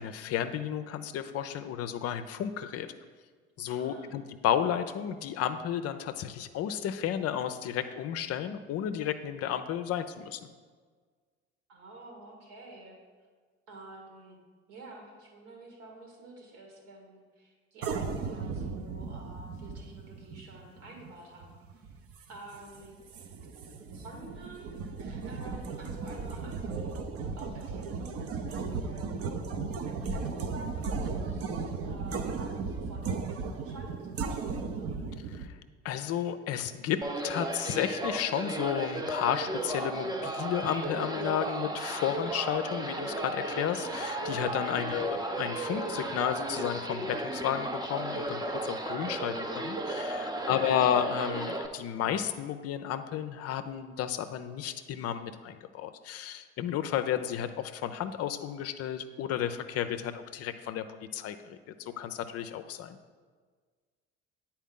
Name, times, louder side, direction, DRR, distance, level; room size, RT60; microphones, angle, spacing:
voice 1, 0.0-2.9 3.6-10.4 35.3-35.5 35.8-60.8 61.1-63.0, left 9 dB, 50° left, 10 dB, 0.5 m, -32 dB
voice 2, 3.8-4.2 11.7-13.0 13.7-14.4 14.7-21.9 22.3-23.0 23.9-27.0 27.3-29.1 29.6-34.6 44.6-44.9 50.2-50.8, right 2 dB, 70° right, 1 dB, 1.9 m, -50 dB
sound 1, 17.8-35.5, right 4 dB, 45° right, 0.7 m, -36 dB
sound 2, 37.0-51.7, right 2 dB, 10° right, 0.7 m, -35 dB
9.1 x 4.4 x 3.7 m, 1.5 s
hypercardioid pair, 60°, 32 cm